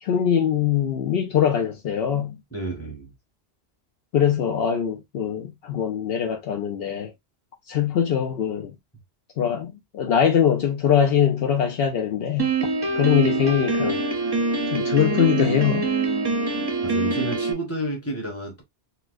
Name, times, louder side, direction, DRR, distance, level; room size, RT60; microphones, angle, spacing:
voice 1, 0.0-2.4 4.1-7.1 7.7-8.7 9.4-12.5 12.9-14.0 14.7-15.9, left 8 dB, 70° left, 0.8 m, -22 dB
voice 2, 2.5-3.1 16.8-18.6, right 2 dB, 15° left, 1.3 m, -30 dB
Piano, 12.4-17.5, right 3 dB, 30° right, 0.5 m, -24 dB
4.1 x 2.2 x 2.4 m
omnidirectional pair, 1.1 m